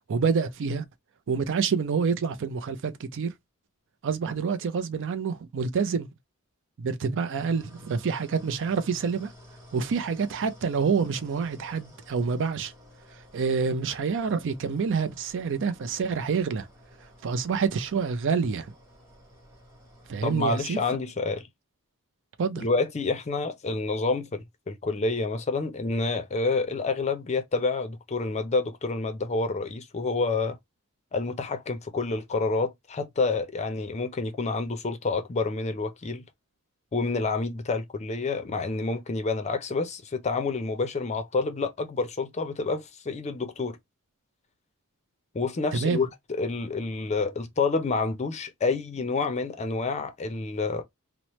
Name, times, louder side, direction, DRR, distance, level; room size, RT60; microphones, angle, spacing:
voice 1, 0.1-0.8 1.3-3.3 4.0-6.1 6.8-9.3 9.7-12.7 13.3-16.7 17.2-18.7 20.1-20.8 22.4-22.7 45.7-46.1, right 5 dB, 60° right, 0.4 m, -27 dB
sound 1, 7.3-20.4, left 1 dB, 15° right, 1.0 m, -52 dB
voice 2, 20.2-21.5 22.6-30.6 31.1-36.2 36.9-43.8 45.3-50.8, left 3 dB, 30° left, 0.5 m, -28 dB
2.9 x 2.0 x 2.9 m
head